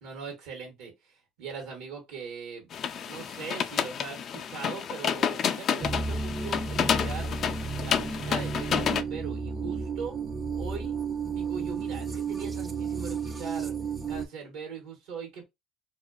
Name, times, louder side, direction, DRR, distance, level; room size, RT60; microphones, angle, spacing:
voice 1, 0.0-2.7 3.0-7.3 7.8-10.2 10.5-10.9 11.3-13.8 14.1-15.5, right 5 dB, 85° right, 1.1 m, -40 dB
sound 1, 2.7-9.0, left 8 dB, 50° left, 0.3 m, -30 dB
sound 2, 5.8-14.3, right 5 dB, 25° right, 0.5 m, -32 dB
2.4 x 2.2 x 2.4 m
supercardioid pair, 100°, 0 cm